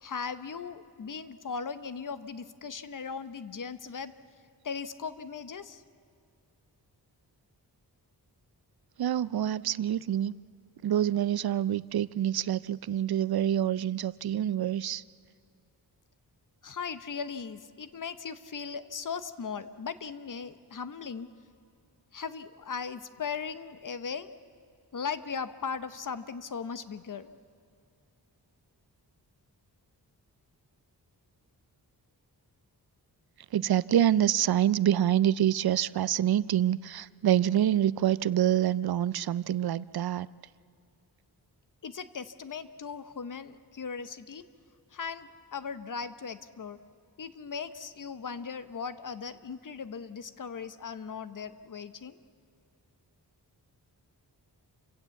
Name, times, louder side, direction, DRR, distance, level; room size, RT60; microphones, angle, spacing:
voice 1, 0.0-4.1 4.6-5.8 16.6-21.3 22.1-24.3 24.9-27.3 41.8-44.4 44.9-46.8 47.2-52.2, left 6 dB, 50° left, 13 dB, 0.9 m, -38 dB
voice 2, 9.0-10.3 10.8-15.0 33.5-40.3, right 11 dB, 65° right, 19 dB, 0.5 m, -26 dB
28.0 x 16.5 x 8.2 m, 2.3 s
wide cardioid pair, 145°, 40 cm